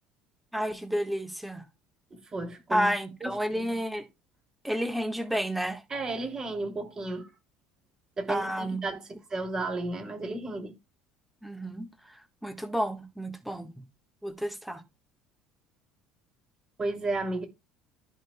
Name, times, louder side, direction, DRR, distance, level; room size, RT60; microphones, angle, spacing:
voice 1, 0.5-1.6 2.7-4.0 4.6-5.8 8.3-8.8 11.4-11.9 12.4-13.7 14.2-14.8, equal, ahead, 1.5 m, -30 dB
voice 2, 2.1-2.9 3.2-3.8 5.9-7.3 8.2-10.7 16.8-17.4, right 2 dB, 25° right, 2.7 m, -33 dB
14.0 x 5.3 x 2.3 m
figure-of-eight pair, 60°, 3 cm